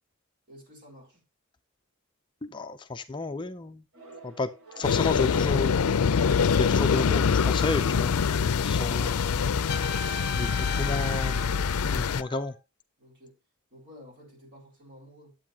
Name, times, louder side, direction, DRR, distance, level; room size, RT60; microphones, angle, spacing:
voice 1, 0.5-1.2 13.0-13.4 13.7-15.4, equal, 50° right, 3.8 m, -51 dB
voice 2, 2.4-3.8 4.2-4.5 4.8-6.0 6.5-8.1 8.6-9.2 10.3-11.4 11.8-12.5, left 3 dB, 20° left, 0.5 m, -31 dB
sound 1, 3.9-7.5, right 2 dB, 75° right, 6.3 m, -50 dB
sound 2, 4.8-12.2, left 6 dB, 80° left, 0.5 m, -25 dB
Trumpet, 9.7-12.5, left 5 dB, 45° left, 0.9 m, -37 dB
10.5 x 8.3 x 2.8 m
head